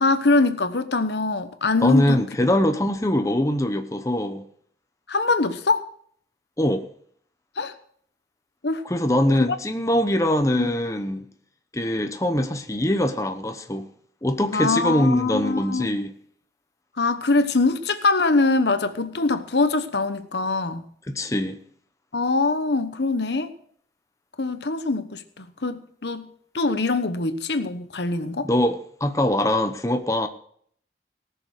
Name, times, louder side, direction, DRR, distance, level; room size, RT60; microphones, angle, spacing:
voice 1, 0.0-2.2 5.1-5.9 7.6-7.7 8.6-8.8 10.6-10.7 14.5-16.0 17.0-20.8 22.1-23.5 24.4-26.2 26.5-28.5, left 3 dB, 75° left, 1.1 m, -23 dB
voice 2, 1.8-4.4 6.6-6.9 8.8-11.3 11.7-13.9 14.2-16.1 21.1-21.6 28.4-30.3, left 1 dB, 15° left, 0.8 m, -23 dB
18.0 x 6.8 x 6.5 m
head